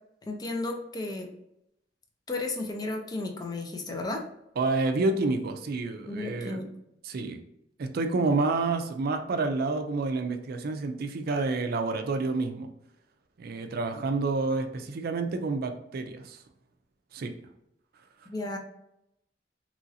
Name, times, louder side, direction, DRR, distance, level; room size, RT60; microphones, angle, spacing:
voice 1, 0.3-1.3 2.3-4.2 6.1-6.7 18.3-18.6, left 2 dB, 20° left, 2 dB, 0.5 m, -33 dB
voice 2, 4.6-6.6 7.0-7.4 7.8-12.7 13.4-16.4 17.1-17.3, right 3 dB, 55° right, 7 dB, 0.4 m, -29 dB
3.0 x 2.5 x 2.7 m, 0.80 s
head